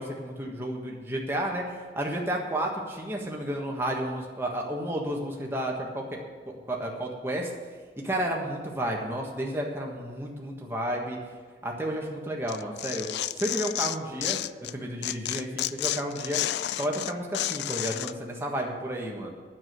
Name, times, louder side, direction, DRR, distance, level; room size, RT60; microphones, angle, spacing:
voice 1, 0.0-6.2 6.5-7.5 8.0-11.2 11.6-13.1 13.3-14.4 14.7-16.4 16.7-19.3, right 1 dB, 15° right, -1 dB, 1.5 m, -32 dB
Tearing, 12.5-14.7 15.0-18.1, left 13 dB, 75° left, 0.3 m, -31 dB
9.6 x 7.4 x 9.0 m, 1.5 s
head